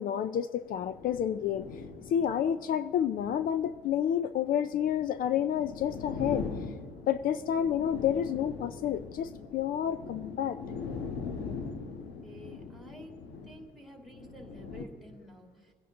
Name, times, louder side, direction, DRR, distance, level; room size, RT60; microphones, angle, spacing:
voice 1, 0.0-1.7 2.1-6.5 7.1-10.6, left 9 dB, 60° left, 13 dB, 0.5 m, -29 dB
sound 1, 0.6-14.8, left 5 dB, 85° left, 1.5 m, -41 dB
voice 2, 12.2-13.1 13.4-15.7, right 1 dB, ahead, 2 dB, 2.6 m, -50 dB
23.0 x 10.5 x 3.7 m, 1.5 s
cardioid pair, 110°, 17 cm